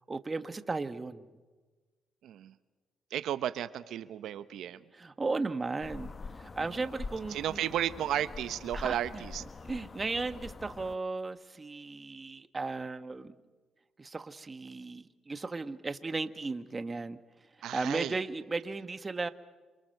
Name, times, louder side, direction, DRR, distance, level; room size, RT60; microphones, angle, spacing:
voice 1, 0.1-1.3 4.9-7.6 8.7-9.2 9.7-13.3 14.0-17.2 17.6-19.3, right 3 dB, 25° right, 11 dB, 1.3 m, -35 dB
voice 2, 2.2-2.5 3.1-4.8 6.6-6.8 7.3-9.4 17.6-18.2, right 11 dB, 80° right, 13 dB, 0.8 m, -34 dB
sound 1, 5.8-11.0, left 4 dB, 35° left, 0.8 m, -44 dB
28.0 x 25.5 x 6.6 m, 1.3 s
cardioid pair, 90°, 0 cm